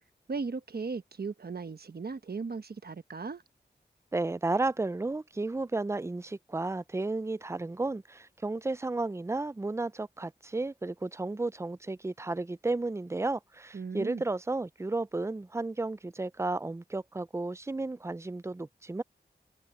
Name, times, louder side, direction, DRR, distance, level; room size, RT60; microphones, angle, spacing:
voice 1, 0.3-3.4 13.7-14.2, right 4 dB, 65° right, 1.1 m, -37 dB
voice 2, 4.1-19.0, right 2 dB, 15° right, 0.4 m, -33 dB
wide cardioid pair, 65°, 18 cm